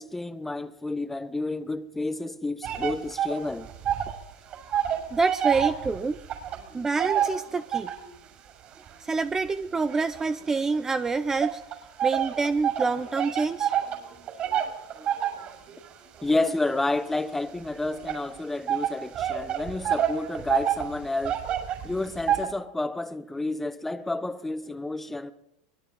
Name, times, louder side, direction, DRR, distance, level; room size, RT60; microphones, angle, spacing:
voice 1, 0.0-3.7 16.2-21.4 21.8-25.3, left 2 dB, 10° left, 1.2 m, -30 dB
sound 1, 2.6-4.2 4.5-8.1 8.7-10.8 11.4-22.5, right 10 dB, 40° right, 6.5 m, -29 dB
voice 2, 5.1-6.2 6.7-7.9 9.0-11.6 12.0-13.7 14.3-14.6, right 4 dB, 15° right, 0.8 m, -27 dB
24.0 x 20.5 x 5.4 m
supercardioid pair, 115°, 3 cm